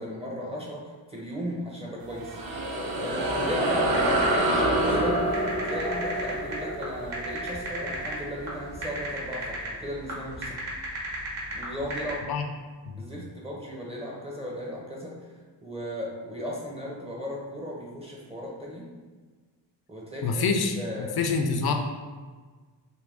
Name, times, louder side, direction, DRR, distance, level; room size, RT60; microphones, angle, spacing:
voice 1, 0.0-2.4 3.0-10.6 11.5-12.3 13.0-18.9 19.9-20.4 20.8-21.5, equal, 15° right, -4 dB, 0.6 m, -36 dB
sound 1, 2.0-8.8, right 1 dB, 50° right, 0.7 m, -27 dB
sound 2, 3.9-12.1, right 2 dB, 75° right, 1.1 m, -35 dB
voice 2, 20.2-21.7, left 4 dB, 55° left, 4 dB, 0.5 m, -26 dB
2.6 x 2.6 x 3.4 m, 1.4 s
cardioid pair, 75°, 46 cm